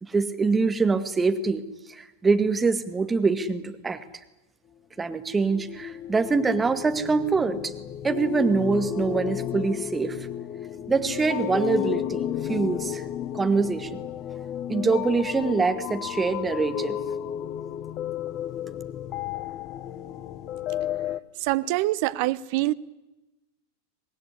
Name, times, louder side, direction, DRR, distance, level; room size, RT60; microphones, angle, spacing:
voice 1, 0.0-1.6 1.9-4.0 5.0-7.7 8.0-10.3 10.9-13.1 13.3-14.0 14.7-17.0, right 4 dB, 15° right, 9 dB, 2.0 m, -24 dB
sound 1, 5.2-21.2, left 11 dB, 35° left, 0.9 m, -33 dB
voice 2, 21.4-22.7, right 17 dB, 45° right, 16 dB, 0.9 m, -25 dB
25.0 x 19.0 x 9.9 m, 1.0 s
figure-of-eight pair, 90°, 0 cm